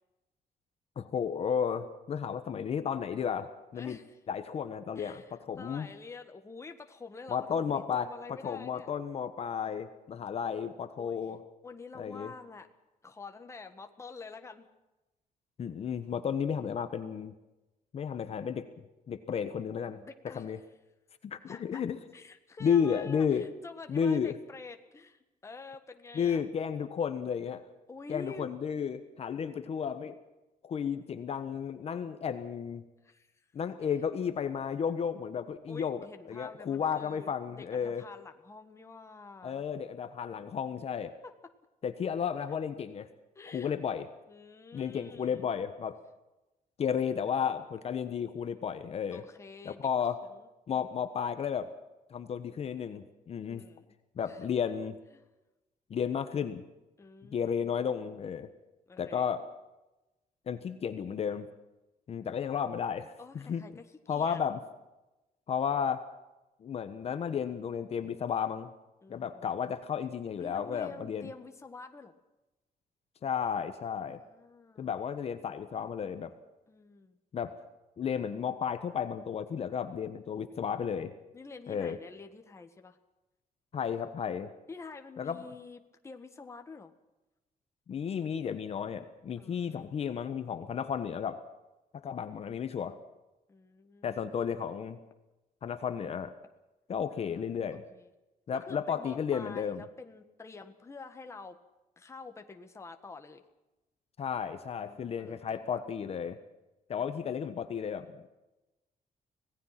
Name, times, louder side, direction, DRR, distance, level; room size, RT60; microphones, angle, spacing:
voice 1, 1.0-4.0 4.3-5.9 7.3-11.4 11.9-12.3 15.6-17.3 17.9-18.7 19.1-20.0 20.3-20.6 21.2-22.0 22.6-23.4 23.9-24.3 26.1-27.6 28.1-30.2 30.6-32.8 33.5-36.0 36.3-38.0 39.4-41.1 41.8-43.1 43.5-44.1 44.7-46.0 46.8-49.2 49.6-50.2 50.7-51.7 52.1-53.6 54.2-55.0 55.9-56.6 57.3-58.5 59.0-59.4 60.5-61.5 62.1-63.6 64.1-64.6 65.5-66.0 66.6-68.7 69.1-71.3 73.2-74.2 74.8-76.3 77.3-77.5 78.0-81.1 81.7-82.0 83.7-84.5 85.2-85.4 87.9-91.4 91.9-93.0 94.0-95.0 95.6-96.3 96.9-97.8 98.5-99.8 104.2-106.4 106.9-108.3, left 7 dB, 45° left, 9 dB, 1.3 m, -33 dB
voice 2, 3.7-4.2 4.9-8.9 11.0-11.3 11.6-12.7 13.0-14.7 19.9-20.4 21.4-21.8 22.1-26.4 27.9-28.5 33.0-33.5 35.7-39.6 41.2-41.3 43.3-43.7 44.3-45.5 49.1-49.9 50.3-51.0 53.4-54.0 54.3-54.5 55.1-55.2 57.0-57.8 58.9-59.3 63.2-64.4 69.0-69.4 70.4-72.1 74.1-75.0 76.7-77.2 81.3-83.0 84.7-86.9 89.4-90.0 93.5-94.2 97.1-98.1 98.5-101.6 102.0-103.4 104.8-105.8, left 4 dB, 20° left, 6 dB, 1.6 m, -48 dB
26.0 x 18.0 x 5.9 m, 1.0 s
cardioid pair, 170°, 15 cm